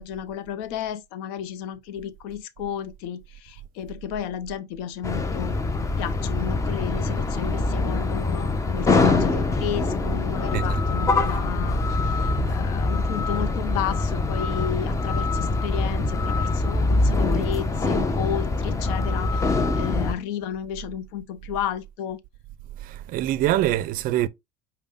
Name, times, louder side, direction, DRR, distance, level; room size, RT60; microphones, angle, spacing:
voice 1, 0.0-5.6 6.0-22.2, left 9 dB, 75° left, 0.6 m, -33 dB
sound 1, 5.0-20.2, left 3 dB, 15° left, 0.7 m, -24 dB
voice 2, 10.5-10.9 12.4-12.6 22.8-24.3, right 13 dB, 50° right, 0.4 m, -25 dB
5.3 x 2.2 x 3.5 m
supercardioid pair, 100°, 18 cm